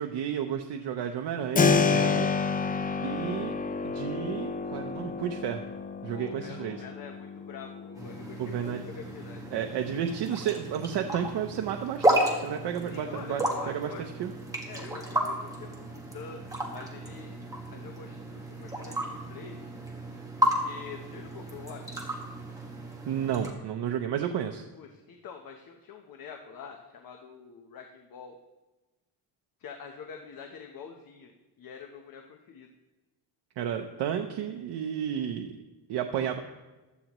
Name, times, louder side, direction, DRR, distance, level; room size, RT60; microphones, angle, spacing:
voice 1, 0.0-2.3 3.0-3.6 3.8-5.6 6.0-6.8 8.4-8.8 9.5-13.9 14.2-14.3 23.1-24.6 33.6-35.6 35.9-36.4, right 9 dB, 85° right, 4 dB, 0.8 m, -32 dB
Keyboard (musical), 1.6-12.2, left 5 dB, 20° left, 0.4 m, -31 dB
voice 2, 6.1-9.4 12.9-14.1 14.6-17.3 17.7-19.6 20.4-22.0 24.8-28.4 29.6-32.7 36.1-36.3, left 6 dB, 60° left, 3 dB, 1.0 m, -45 dB
sound 1, 7.9-23.5, right 1 dB, 10° right, 1.6 m, -33 dB
15.5 x 11.5 x 3.0 m, 1.1 s
wide cardioid pair, 170°, 40 cm